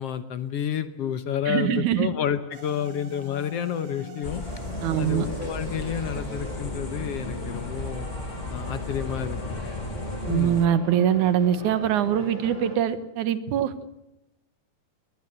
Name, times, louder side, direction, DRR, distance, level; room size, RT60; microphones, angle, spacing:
voice 1, 0.0-4.4 5.0-8.1 8.5-9.8 10.3-10.6, left 9 dB, 65° left, 11 dB, 1.8 m, -30 dB
voice 2, 1.5-2.1 4.8-5.3 10.2-13.7, right 9 dB, 80° right, 13 dB, 2.7 m, -23 dB
sound 1, 2.5-11.0, left 3 dB, 60° right, 4.9 m, -45 dB
sound 2, 4.2-10.7, left 2 dB, 90° left, 0.4 m, -35 dB
sound 3, 4.5-12.8, equal, 20° right, 6.5 m, -39 dB
22.0 x 19.0 x 8.0 m, 0.93 s
omnidirectional pair, 3.4 m